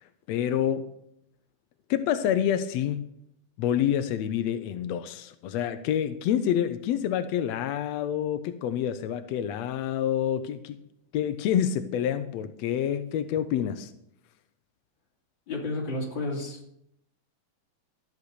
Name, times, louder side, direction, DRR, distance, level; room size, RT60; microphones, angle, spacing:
voice 1, 0.3-0.9 1.9-3.1 3.6-10.8 11.1-13.9, left 10 dB, 85° left, 1.5 m, -27 dB
voice 2, 15.5-16.8, left 2 dB, 35° left, 3.4 m, -32 dB
13.5 x 6.7 x 7.9 m
omnidirectional pair, 3.8 m